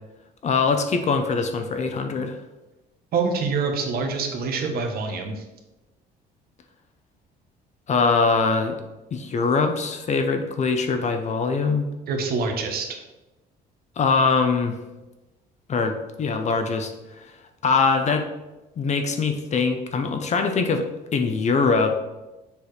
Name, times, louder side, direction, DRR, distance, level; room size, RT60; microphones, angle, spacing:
voice 1, 0.4-2.4 7.9-8.8 9.1-11.8 14.0-14.8 15.7-16.9 17.2-17.3 17.6-18.3 18.8-22.0, left 4 dB, 45° left, 6 dB, 0.9 m, -22 dB
voice 2, 3.1-5.4 12.1-13.0, right 4 dB, 65° right, 4 dB, 1.4 m, -26 dB
6.9 x 4.8 x 4.9 m, 1.0 s
cardioid pair, 110°, 17 cm